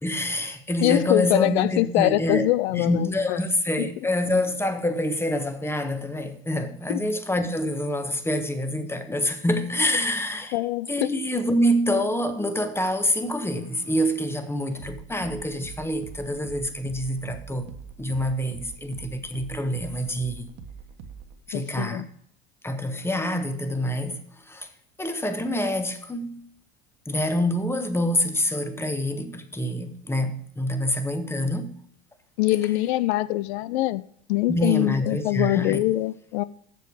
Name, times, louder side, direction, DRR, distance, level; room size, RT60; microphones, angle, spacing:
voice 1, 0.0-2.5 2.8-10.6 10.9-17.7 18.0-20.5 21.5-22.0 22.6-24.7 25.0-26.5 27.1-31.8 34.5-35.8, left 1 dB, 5° left, 1.1 m, -26 dB
voice 2, 0.8-3.4 3.8-3.9 6.9-7.0 10.5-11.1 21.5-22.0 32.4-34.0 34.3-36.4, left 17 dB, 80° left, 0.5 m, -23 dB
sound 1, 13.1-21.4, right 6 dB, 65° right, 1.3 m, -44 dB
7.8 x 7.0 x 4.7 m
supercardioid pair, 90°, 32 cm